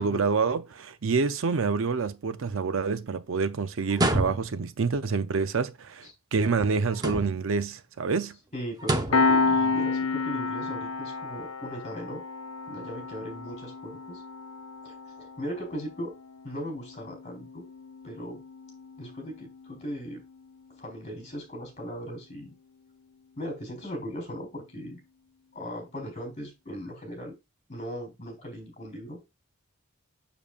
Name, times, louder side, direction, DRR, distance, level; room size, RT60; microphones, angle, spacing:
voice 1, 0.0-8.3, right 4 dB, 65° right, 0.5 m, -27 dB
sound 1, 3.9-4.7 6.9-7.6 8.8-9.3, right 1 dB, 20° right, 0.8 m, -28 dB
voice 2, 8.5-12.2 12.7-14.2 14.8-16.1 16.4-17.6 18.0-18.4 19.0-20.2 20.8-22.5 23.4-25.0 25.5-27.3 27.7-29.2, equal, 35° left, 4.0 m, -38 dB
Piano, 9.1-20.2, left 4 dB, 80° left, 0.5 m, -31 dB
7.0 x 6.8 x 2.4 m
head